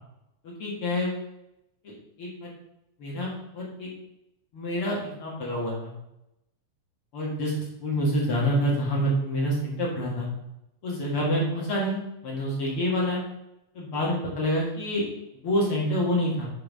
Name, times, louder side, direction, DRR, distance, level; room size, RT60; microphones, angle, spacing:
voice 1, 0.4-1.1 1.8-2.5 3.0-3.9 4.5-5.9 7.1-10.3 10.8-13.2 13.7-15.0 15.4-16.5, equal, 50° left, -4 dB, 1.7 m, -27 dB
7.2 x 5.7 x 5.5 m, 0.87 s
omnidirectional pair, 5.2 m